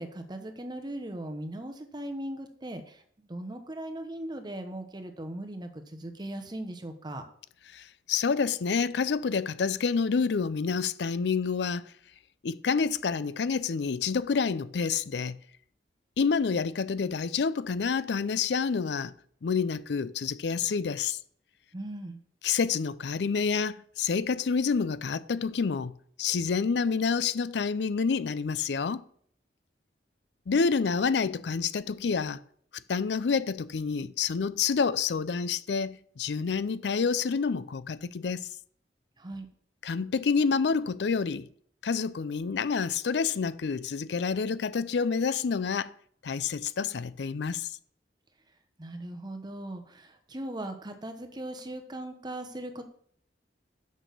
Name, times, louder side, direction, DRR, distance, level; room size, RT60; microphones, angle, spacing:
voice 1, 0.0-7.3 21.7-22.2 39.2-39.5 48.8-52.8, right 1 dB, 25° right, 0.9 m, -39 dB
voice 2, 7.7-11.8 12.4-15.4 16.2-19.1 19.4-21.2 22.4-29.0 30.5-32.4 32.9-38.5 39.8-41.5 41.8-45.9 46.2-47.8, left 5 dB, 70° left, 0.5 m, -28 dB
6.3 x 6.2 x 6.8 m
head